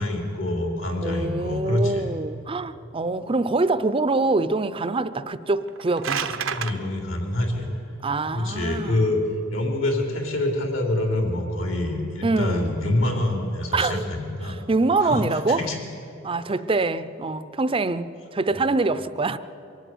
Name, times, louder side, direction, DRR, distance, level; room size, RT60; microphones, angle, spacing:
voice 1, 0.0-2.1 6.4-7.7 8.3-9.2 9.5-14.6 15.0-15.8 18.5-18.6, left 1 dB, 75° left, 3.7 m, -26 dB
voice 2, 1.0-6.5 8.0-9.2 12.2-12.7 13.7-14.0 14.4-15.7 16.2-19.4, right 3 dB, 25° right, 0.6 m, -25 dB
sound 1, 5.6-6.7, right 7 dB, 90° right, 1.0 m, -29 dB
23.5 x 12.5 x 9.3 m
head